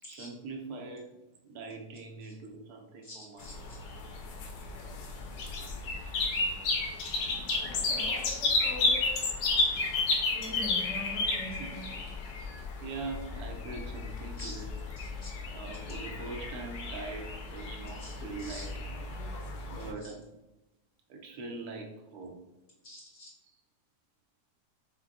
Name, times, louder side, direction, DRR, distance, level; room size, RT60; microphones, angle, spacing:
voice 1, 0.0-1.1 1.4-3.4 11.6-11.7 12.8-14.7 15.5-18.7 19.1-19.2 19.7-20.3 21.1-22.3, right 3 dB, 70° right, 2 dB, 1.2 m, -42 dB
voice 2, 3.0-3.8 7.8-8.1 8.4-9.1 10.3-11.9 14.4-14.6 15.0-15.3 18.0-18.7 20.0-20.1 22.8-23.3, left 1 dB, 45° left, -7 dB, 1.6 m, -44 dB
sound 1, 3.4-19.9, left 3 dB, 85° left, 1.3 m, -33 dB
5.7 x 2.2 x 2.6 m, 0.95 s
omnidirectional pair, 1.8 m